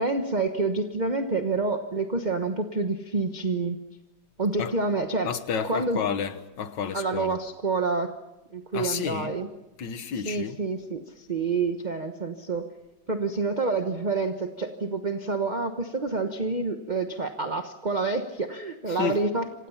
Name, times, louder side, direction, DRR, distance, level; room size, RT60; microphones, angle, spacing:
voice 1, 0.0-3.8 4.4-5.3 5.6-6.0 6.9-8.1 8.5-9.5 10.2-12.6 13.1-19.7, right 3 dB, 30° right, 1.1 m, -28 dB
voice 2, 5.2-7.4 8.7-9.4 9.8-10.6 19.0-19.2, left 7 dB, 70° left, 1.9 m, -30 dB
28.0 x 26.0 x 5.8 m
omnidirectional pair, 2.1 m